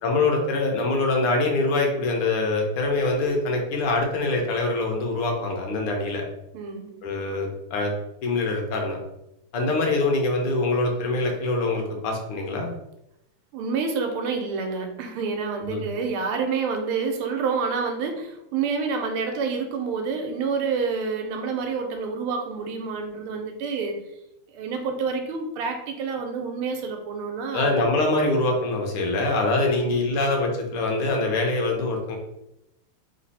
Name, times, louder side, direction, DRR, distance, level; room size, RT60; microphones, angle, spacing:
voice 1, 0.0-6.2 7.0-7.9 8.2-9.0 9.5-12.7 15.7-15.8 27.5-32.2, left 2 dB, 90° left, 1 dB, 1.8 m, -24 dB
voice 2, 6.5-7.1 13.5-24.1 24.5-27.7, right 5 dB, 90° right, 5 dB, 1.6 m, -28 dB
3.7 x 3.2 x 4.0 m, 0.85 s
omnidirectional pair, 2.4 m